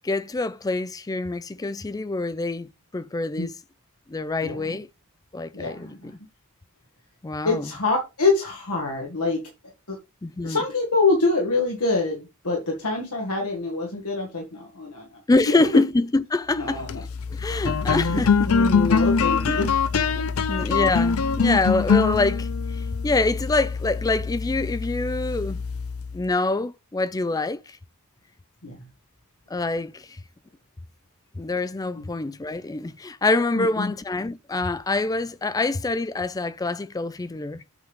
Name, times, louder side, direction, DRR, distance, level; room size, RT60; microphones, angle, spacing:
voice 1, 0.0-3.5 4.1-4.9 5.3-6.1 7.2-7.7 10.2-10.6 15.3-16.8 17.3-18.5 19.5-19.6 20.5-22.5 22.7-25.6 26.1-27.6 29.5-30.1 31.4-37.6, left 2 dB, 15° left, 0.4 m, -25 dB
voice 2, 4.4-4.8 5.5-6.1 7.4-9.4 9.9-10.0 10.4-15.2 15.5-15.8 16.5-17.0 18.1-19.7 28.6-28.9 32.0-32.1 33.6-33.9, left 3 dB, 90° left, 1.8 m, -25 dB
sound 1, 16.7-26.3, left 5 dB, 70° left, 0.5 m, -24 dB
8.0 x 3.5 x 5.5 m
head